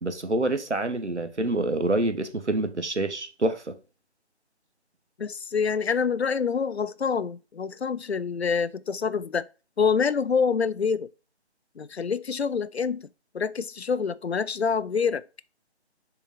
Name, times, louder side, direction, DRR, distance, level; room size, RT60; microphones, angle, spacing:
voice 1, 0.0-3.8, right 2 dB, 85° right, 1.3 m, -27 dB
voice 2, 5.2-9.4 9.8-11.1 11.8-13.1 13.3-15.3, left 6 dB, 70° left, 0.5 m, -26 dB
6.8 x 4.5 x 3.7 m
figure-of-eight pair, 160°, 34 cm